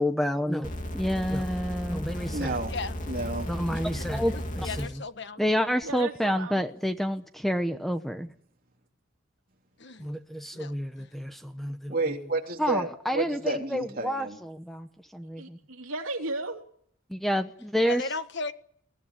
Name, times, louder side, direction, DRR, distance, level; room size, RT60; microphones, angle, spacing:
voice 1, 0.0-2.6 3.5-5.0 5.4-8.3 10.0-11.9 12.6-15.6 17.1-18.1, equal, ahead, 1.0 m, -29 dB
sound 1, 0.6-4.9 5.8-5.9, equal, 35° left, 3.0 m, -34 dB
voice 2, 2.3-2.7 3.1-3.5 11.9-14.4, right 2 dB, 40° right, 3.2 m, -30 dB
voice 3, 4.3-5.4 9.8-10.1 10.5-10.7 11.0-11.1 17.8-18.5, left 3 dB, 55° left, 1.3 m, -36 dB
voice 4, 5.8-6.6 15.4-16.6, right 2 dB, 75° right, 3.3 m, -35 dB
22.5 x 17.0 x 10.0 m
head